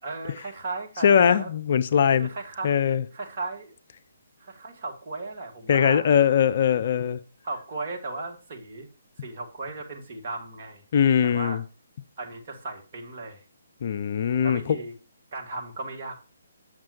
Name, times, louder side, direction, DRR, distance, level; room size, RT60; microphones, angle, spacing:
voice 1, 0.0-1.5 2.2-2.7 3.1-3.8 4.4-6.3 7.4-8.9 9.2-10.8 11.2-11.6 12.2-13.4 14.2-14.9 15.3-16.2, right 3 dB, 40° right, 1.7 m, -36 dB
voice 2, 1.0-2.3 2.6-3.0 5.7-7.2 10.9-11.6 13.8-14.8, left 8 dB, 45° left, 0.4 m, -21 dB
7.4 x 6.4 x 2.8 m
figure-of-eight pair, 135°, 0 cm